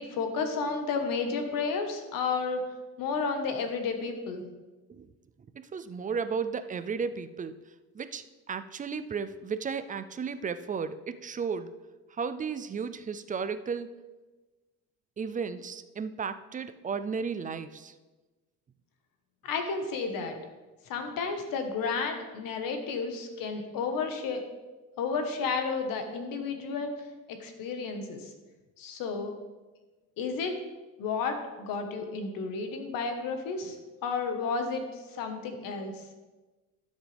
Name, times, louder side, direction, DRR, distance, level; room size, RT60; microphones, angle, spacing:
voice 1, 0.0-2.6 3.0-4.4 19.4-20.4 20.8-24.4 25.0-26.9 27.3-28.3 28.8-29.3 30.2-30.5 31.0-33.8 34.0-36.0, left 4 dB, 80° left, 5 dB, 1.4 m, -32 dB
voice 2, 5.5-11.8 12.1-14.0 15.2-17.9, right 5 dB, 25° right, 11 dB, 0.4 m, -34 dB
12.5 x 7.3 x 3.4 m, 1.2 s
cardioid pair, 125°, 34 cm